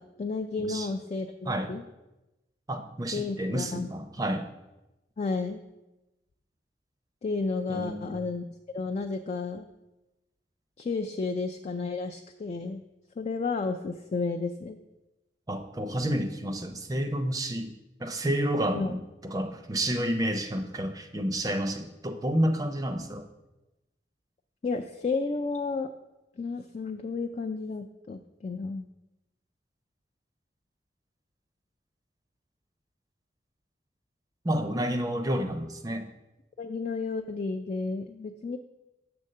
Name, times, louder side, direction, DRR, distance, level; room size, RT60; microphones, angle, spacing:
voice 1, 0.0-1.8 3.1-3.9 5.2-5.6 7.2-8.4 8.7-9.7 10.8-12.8 13.2-14.8 18.7-18.9 24.6-25.9 26.4-28.9 36.6-38.6, left 4 dB, 35° left, 5 dB, 0.3 m, -32 dB
voice 2, 2.7-4.5 7.7-8.2 15.5-17.7 18.0-23.3 34.4-36.1, right 1 dB, 20° right, 7 dB, 0.5 m, -30 dB
7.8 x 3.5 x 6.6 m, 1.0 s
head